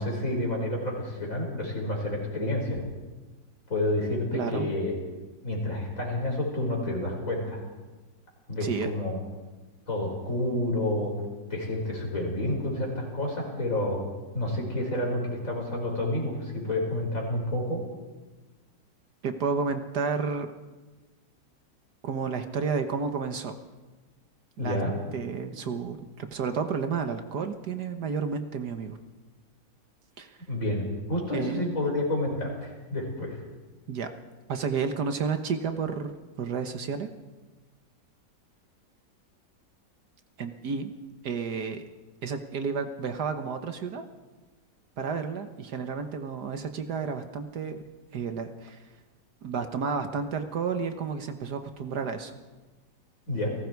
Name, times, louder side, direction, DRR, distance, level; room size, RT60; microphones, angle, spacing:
voice 1, 0.0-2.8 3.7-4.9 5.4-7.6 8.5-9.2 9.9-11.1 11.5-14.0 14.3-17.8 24.6-24.9 30.5-33.4 53.3-53.5, left 1 dB, 45° left, -1 dB, 6.0 m, -29 dB
voice 2, 4.3-4.7 8.6-8.9 19.2-20.5 22.0-23.5 24.6-24.8 25.1-29.0 30.2-30.4 31.3-31.7 33.9-34.1 34.5-37.1 40.4-40.9 41.2-41.8 42.2-44.0 45.0-47.8 48.1-48.8 49.4-52.3, right 5 dB, 65° right, 7 dB, 1.7 m, -31 dB
30.0 x 18.5 x 4.7 m, 1.2 s
omnidirectional pair, 1.9 m